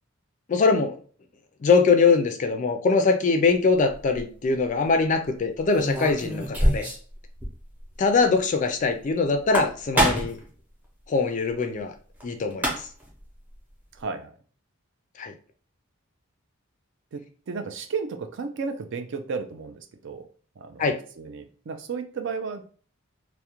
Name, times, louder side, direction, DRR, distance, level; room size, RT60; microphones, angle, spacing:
voice 1, 0.5-1.0 1.6-6.9 8.0-10.4 11.1-11.9 12.2-12.9 15.2-15.3 20.8-21.0, left 4 dB, 35° left, 6 dB, 0.3 m, -22 dB
sound 1, 3.9-4.2 5.7-7.1 7.4-7.5 7.8-7.9 9.3-10.4 12.2-12.3 12.5-13.1, right 1 dB, 10° right, 0.6 m, -25 dB
voice 2, 13.9-14.3 17.1-20.3 20.6-22.6, right 5 dB, 60° right, 7 dB, 0.4 m, -33 dB
2.3 x 2.1 x 2.9 m, 0.42 s
head